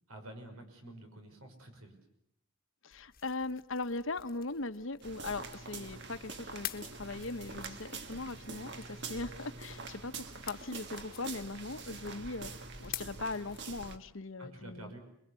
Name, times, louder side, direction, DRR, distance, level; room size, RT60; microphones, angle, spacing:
voice 1, 0.1-2.0 14.4-15.0, right 1 dB, 85° right, 5 dB, 5.8 m, -49 dB
voice 2, 2.8-14.9, left 3 dB, 65° left, 11 dB, 1.1 m, -40 dB
sound 1, 2.9-14.1, left 12 dB, 40° left, 1.3 m, -50 dB
sound 2, 5.0-14.0, right 4 dB, 55° right, 1.6 m, -45 dB
27.0 x 22.0 x 8.3 m, 0.76 s
head